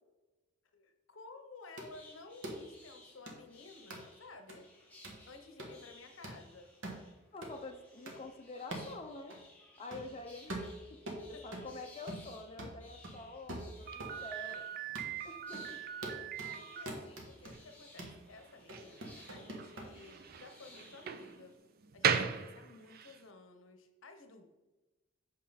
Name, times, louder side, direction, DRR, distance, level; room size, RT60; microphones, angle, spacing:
voice 1, 0.7-4.7 5.3-6.7 11.3-11.5 15.2-15.3 16.4-21.6 21.9-24.5, left 3 dB, 75° left, 7 dB, 0.8 m, -54 dB
sound 1, 1.8-21.6, left 2 dB, 10° left, 1.2 m, -60 dB
sound 2, 1.8-1.9 2.4-2.6 3.3-3.4 3.9-4.0 4.5-4.6 5.0-5.2 5.6-5.7 6.2-6.4 6.8-7.0 7.4-7.6 8.1-8.2 8.7-8.9 9.3-9.4 9.9-10.1 10.5-11.7 12.1-12.3 12.6-14.2 14.5-14.6 14.9-15.1 15.5-15.7 16.0-16.5 16.9-17.5 18.0-18.2 18.7-19.9, right 1 dB, 70° right, 1.3 m, -44 dB
voice 2, 7.3-9.4 9.8-10.6 11.3-14.7 15.2-15.8, left 3 dB, 30° left, 3 dB, 0.5 m, -47 dB
Slam, 13.9-23.2, right 7 dB, 50° right, 0.4 m, -39 dB
6.4 x 5.4 x 4.0 m, 1.1 s
head